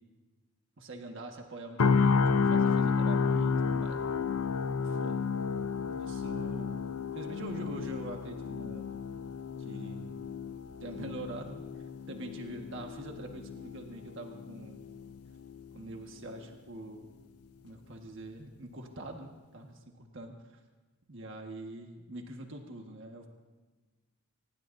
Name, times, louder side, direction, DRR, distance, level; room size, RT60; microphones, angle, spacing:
voice 1, 0.8-4.1 4.8-5.2 5.9-6.8 7.1-8.9 9.6-10.2 10.8-11.6 12.1-14.8 15.7-17.1 17.6-20.6 21.1-23.3, right 1 dB, 60° right, 3 dB, 1.5 m, -44 dB
sound 1, 1.8-15.8 16.1-16.4, left 5 dB, 90° left, 0.6 m, -31 dB
25.5 x 19.5 x 2.7 m, 1.3 s
head